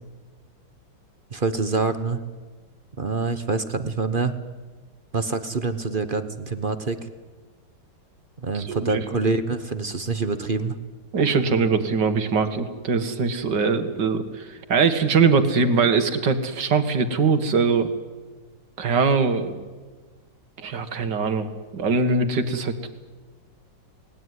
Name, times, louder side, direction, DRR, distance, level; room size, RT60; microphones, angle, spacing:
voice 1, 1.3-2.2 3.0-4.3 5.1-7.0 8.4-10.8, right 4 dB, 35° right, 10 dB, 0.9 m, -26 dB
voice 2, 8.5-9.0 11.1-17.9 18.8-19.6 20.6-21.5 21.7-22.7, right 5 dB, 60° right, 8 dB, 2.4 m, -22 dB
28.0 x 19.5 x 9.6 m, 1.4 s
omnidirectional pair, 2.2 m